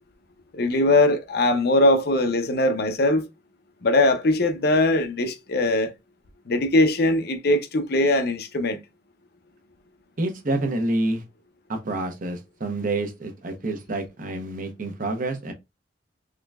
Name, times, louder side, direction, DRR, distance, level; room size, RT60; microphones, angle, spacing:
voice 1, 0.5-3.3 3.8-5.9 6.5-8.8, left 2 dB, 60° left, 0.6 m, -21 dB
voice 2, 10.2-11.2 11.7-15.5, right 2 dB, 50° right, 0.8 m, -28 dB
3.8 x 3.2 x 2.3 m
head